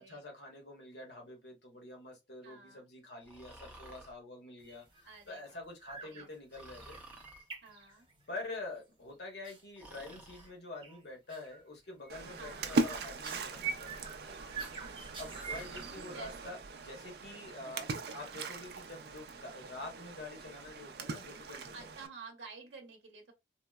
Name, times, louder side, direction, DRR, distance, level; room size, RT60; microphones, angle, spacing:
voice 1, 0.0-7.0 7.9-8.0 8.3-14.4 15.2-17.8 18.1-21.9, left 2 dB, 65° left, 1.1 m, -47 dB
voice 2, 2.4-2.9 5.0-5.6 6.0-6.3 7.6-8.1 12.4-12.7 15.6-16.6 17.6-18.3 21.7-23.3, right 4 dB, 80° right, 0.7 m, -52 dB
Breathing, 3.2-4.2 6.5-7.5 9.8-10.5 12.6-13.1 15.3-16.0, right 2 dB, 10° right, 0.6 m, -52 dB
sound 1, 4.6-5.0 5.3-5.5 5.8-6.3 6.5-8.3 9.4-9.6 10.1-10.5 10.8-11.0 11.3-11.6 12.0-15.8, right 5 dB, 30° right, 1.0 m, -45 dB
Splash splatter, 12.1-22.1, right 3 dB, 60° right, 0.4 m, -40 dB
3.6 x 2.0 x 2.3 m
head